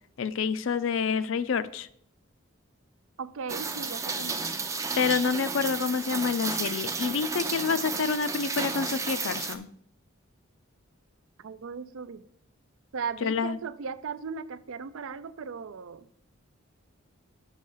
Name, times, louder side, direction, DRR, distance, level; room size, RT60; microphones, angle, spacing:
voice 1, 0.2-1.9 5.0-9.7 13.2-13.6, left 5 dB, 65° left, 14 dB, 0.4 m, -28 dB
voice 2, 3.2-4.4 11.4-12.2 12.9-16.1, right 5 dB, 75° right, 15 dB, 0.4 m, -37 dB
Rain, 3.5-9.6, right 4 dB, 15° right, 0.4 m, -32 dB
6.3 x 5.4 x 5.5 m, 0.66 s
head